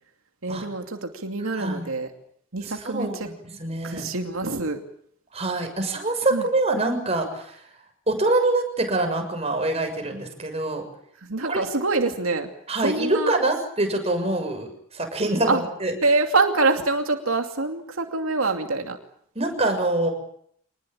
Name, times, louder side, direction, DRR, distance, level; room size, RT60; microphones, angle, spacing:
voice 1, 0.4-2.1 2.5-3.3 3.8-4.8 6.3-6.4 11.2-12.5 12.8-13.4 15.5-15.6 16.0-19.0, right 3 dB, 85° right, 4 dB, 2.6 m, -25 dB
voice 2, 1.5-1.9 2.6-3.3 3.6-4.1 5.3-7.4 8.1-10.9 11.5-11.7 12.7-15.9 19.4-20.1, right 2 dB, 30° right, 4 dB, 6.8 m, -25 dB
26.5 x 20.0 x 8.8 m, 0.68 s
head